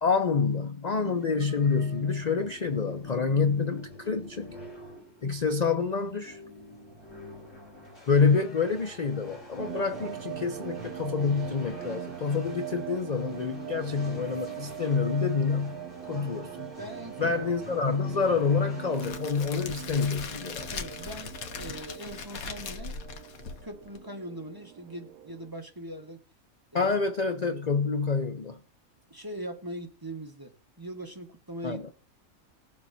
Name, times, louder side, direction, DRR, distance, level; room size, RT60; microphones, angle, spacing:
voice 1, 0.0-4.6 5.2-6.4 8.1-16.7 17.2-20.7 26.7-28.6 31.6-31.9, left 5 dB, 40° left, 0.7 m, -27 dB
sound 1, 1.2-19.2, left 1 dB, 60° left, 4.8 m, -47 dB
sound 2, 9.6-25.5, right 13 dB, 80° right, 1.1 m, -42 dB
voice 2, 16.8-17.4 19.5-19.6 20.7-23.0 23.6-26.2 26.7-26.9 29.1-31.9, right 1 dB, 15° right, 1.4 m, -41 dB
Crackle, 18.9-24.0, left 5 dB, 90° left, 1.5 m, -39 dB
20.0 x 7.2 x 2.7 m
omnidirectional pair, 1.5 m